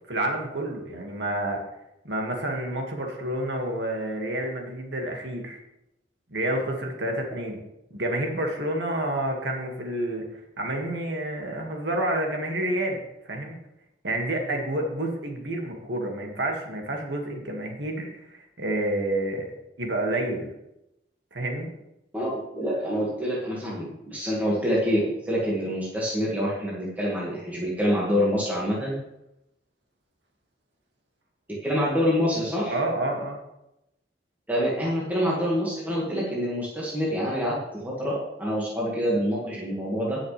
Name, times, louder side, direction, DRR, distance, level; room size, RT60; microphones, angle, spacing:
voice 1, 0.1-1.6 2.0-5.6 6.3-7.6 7.9-13.6 14.0-19.5 19.8-20.5 21.3-21.7 32.7-33.4, right 1 dB, 70° right, 1 dB, 2.0 m, -29 dB
voice 2, 22.1-28.9 31.5-32.7 34.5-40.2, equal, 10° right, -6 dB, 1.9 m, -26 dB
18.5 x 6.3 x 3.4 m, 0.87 s
head